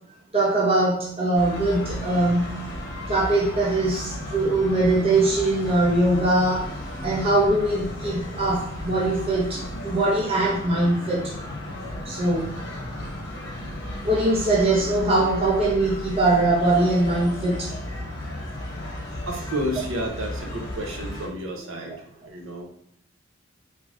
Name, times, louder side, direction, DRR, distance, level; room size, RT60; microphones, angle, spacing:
voice 1, 0.3-2.7 3.1-6.7 7.0-11.3 12.1-12.5 14.0-17.7, right 2 dB, 30° right, -4 dB, 0.6 m, -22 dB
sound 1, 1.3-21.3, left 1 dB, 60° left, 0.9 m, -34 dB
voice 2, 19.3-22.7, equal, 75° right, 1 dB, 0.8 m, -31 dB
3.8 x 3.3 x 2.5 m, 0.72 s
head